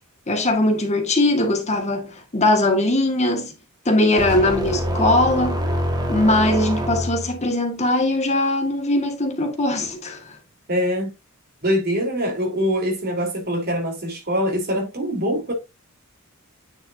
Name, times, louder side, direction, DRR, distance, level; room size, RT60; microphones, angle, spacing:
voice 1, 0.3-3.5 3.8-5.6 6.1-10.2, left 1 dB, 30° left, 1.6 m, -20 dB
sound 1, 4.2-7.4, equal, 20° right, 1.6 m, -25 dB
voice 2, 10.7-11.1 11.6-15.5, equal, 45° right, 3.6 m, -23 dB
9.6 x 5.6 x 2.6 m
head